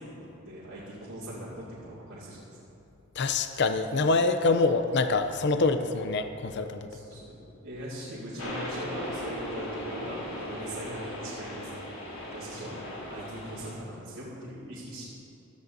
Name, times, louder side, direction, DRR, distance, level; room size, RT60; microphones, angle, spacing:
voice 1, 0.0-2.6 6.9-7.4 7.6-11.7 12.2-15.0, equal, 80° right, -9 dB, 2.5 m, -40 dB
voice 2, 3.2-6.9, left 3 dB, 55° left, 8 dB, 0.5 m, -25 dB
sound 1, 8.4-13.7, equal, 90° left, 2.9 m, -38 dB
16.0 x 13.5 x 2.7 m, 2.8 s
head